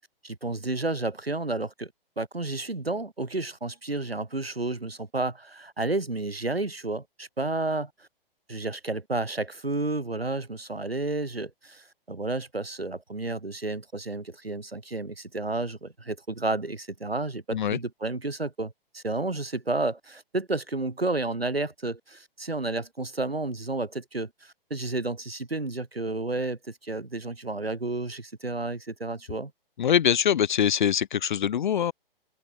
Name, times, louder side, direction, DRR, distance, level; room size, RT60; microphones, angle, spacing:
voice 1, 0.2-8.1 8.5-29.5, right 2 dB, 85° right, 7.3 m, -31 dB
voice 2, 29.8-31.9, left 9 dB, 55° left, 2.2 m, -23 dB
figure-of-eight pair, 120°, 29 cm